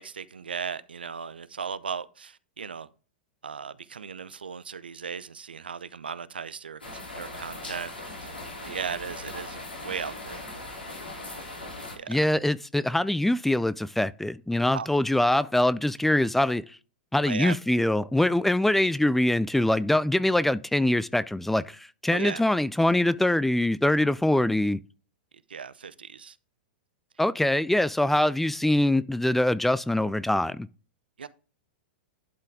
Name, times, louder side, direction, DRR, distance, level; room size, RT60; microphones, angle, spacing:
voice 1, 0.0-2.9 3.4-7.9 8.2-8.3 8.6-10.4 11.9-12.2 14.7-14.9 17.3-17.5 22.1-22.4 25.5-26.4 31.2-31.3, right 6 dB, 80° right, 0.5 m, -36 dB
sound 1, 6.8-12.0, left 2 dB, 90° left, 2.9 m, -39 dB
voice 2, 12.1-16.6 17.1-24.8 27.2-30.7, left 1 dB, 5° left, 0.3 m, -23 dB
11.5 x 4.4 x 3.5 m
figure-of-eight pair, 100°, 5 cm